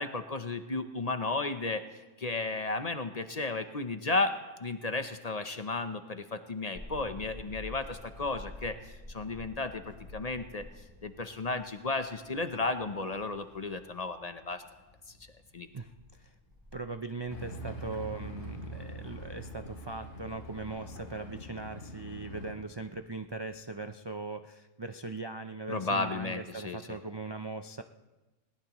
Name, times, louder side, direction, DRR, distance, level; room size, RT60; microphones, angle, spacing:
voice 1, 0.0-10.7 11.0-14.6 15.1-15.2 15.5-15.7 25.7-27.0, left 3 dB, 35° left, 8 dB, 0.8 m, -34 dB
sound 1, 6.7-23.8, left 1 dB, 15° right, 3.8 m, -52 dB
voice 2, 15.7-16.3 16.7-27.8, right 3 dB, 45° right, 7 dB, 0.3 m, -40 dB
sound 2, 17.3-22.5, equal, 90° left, 3.5 m, -43 dB
21.0 x 19.0 x 3.0 m, 1.1 s
omnidirectional pair, 1.3 m